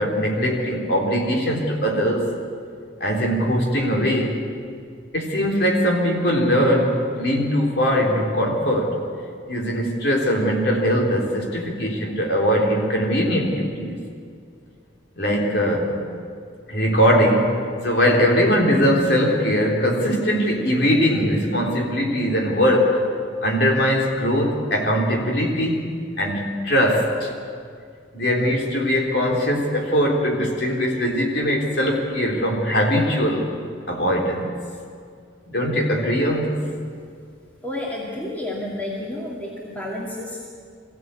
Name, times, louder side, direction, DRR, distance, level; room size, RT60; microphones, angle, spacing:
voice 1, 0.0-2.3 3.0-4.4 5.1-9.0 9.5-14.0 15.2-15.9 16.7-23.0 23.4-25.9 26.2-27.3 28.1-33.4 33.9-34.5 35.5-36.6, equal, 60° left, -1 dB, 3.8 m, -21 dB
voice 2, 37.6-40.4, left 1 dB, 10° left, -5 dB, 2.4 m, -30 dB
23.5 x 15.5 x 8.4 m, 2.2 s
head